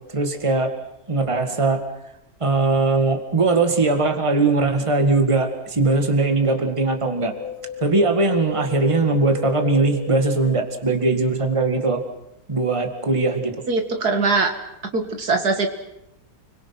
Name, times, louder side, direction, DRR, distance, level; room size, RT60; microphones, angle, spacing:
voice 1, 0.1-0.7 1.1-1.8 2.4-7.3 7.8-12.0 12.5-13.6, right 3 dB, 20° right, 5 dB, 2.1 m, -20 dB
Wind, 7.0-11.3 11.6-11.7, left 5 dB, 65° left, 3.6 m, -34 dB
voice 2, 13.7-14.6 14.9-15.7, right 3 dB, 65° right, 5 dB, 2.3 m, -21 dB
30.0 x 22.5 x 6.0 m, 0.84 s
omnidirectional pair, 1.8 m